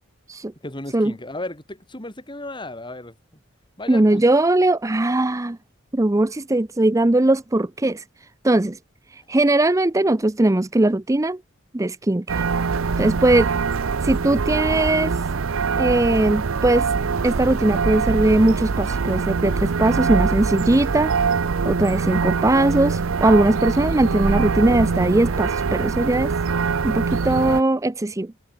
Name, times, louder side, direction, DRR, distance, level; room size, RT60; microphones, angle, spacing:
voice 1, 0.6-3.2 3.8-4.3, left 1 dB, 25° left, 4.1 m, -34 dB
voice 2, 3.9-5.6 5.9-8.0 8.4-8.8 9.1-11.4 11.7-12.4 13.0-13.5 14.0-15.2 15.8-16.9 17.2-21.1 21.6-26.3 26.8-28.3, right 2 dB, 15° right, 0.5 m, -19 dB
sound 1, 12.3-27.6, right 5 dB, 80° right, 0.6 m, -23 dB
head